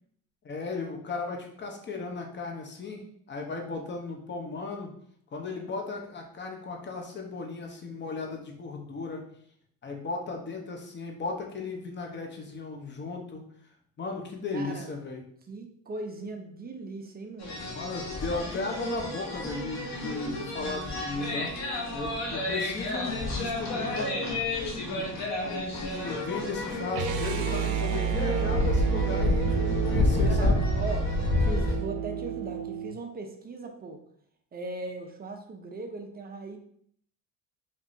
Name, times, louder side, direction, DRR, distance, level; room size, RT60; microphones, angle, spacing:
voice 1, 0.4-4.9 5.3-9.2 9.8-13.4 14.0-15.2 17.7-21.5 21.9-24.1 24.8-25.1 25.8-29.5 29.8-30.6, left 3 dB, 30° left, 2 dB, 0.8 m, -36 dB
voice 2, 14.5-14.9 15.5-17.6 22.5-22.6 23.7-24.4 30.3-34.0 34.5-36.6, right 3 dB, 30° right, 4 dB, 0.5 m, -39 dB
sound 1, 17.4-31.8, left 2 dB, 50° left, 1.1 m, -30 dB
sound 2, 26.9-33.0, right 10 dB, 90° right, 0.5 m, -30 dB
5.1 x 2.7 x 2.6 m, 0.64 s
cardioid pair, 135°, 34 cm